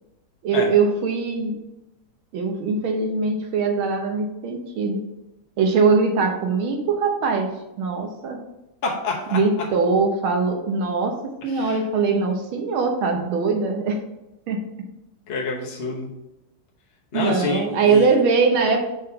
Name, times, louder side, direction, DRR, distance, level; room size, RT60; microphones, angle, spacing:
voice 1, 0.4-1.6 2.3-5.0 5.6-7.5 7.8-8.4 9.3-11.2 11.4-14.0 14.5-14.6 17.1-18.8, right 4 dB, 70° right, 4 dB, 1.6 m, -21 dB
voice 2, 8.8-9.4 11.5-11.8 15.3-16.1 17.1-18.1, left 3 dB, 55° left, -1 dB, 0.6 m, -27 dB
5.4 x 3.6 x 5.6 m, 0.95 s
omnidirectional pair, 2.4 m